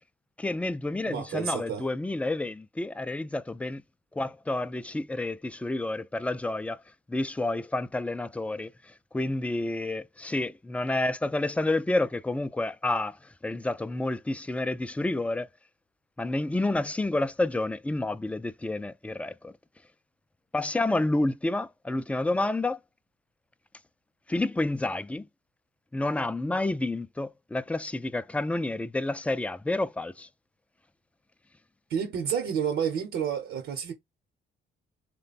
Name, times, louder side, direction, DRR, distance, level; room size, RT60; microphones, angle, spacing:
voice 1, 0.4-3.8 4.1-6.8 7.1-8.7 9.1-13.2 13.4-15.5 16.2-19.5 20.5-22.8 24.3-25.3 25.9-30.3, left 2 dB, 5° left, 0.3 m, -29 dB
voice 2, 1.1-1.9 31.9-33.9, right 7 dB, 80° right, 0.9 m, -30 dB
3.2 x 2.2 x 4.0 m
cardioid pair, 90°, 20 cm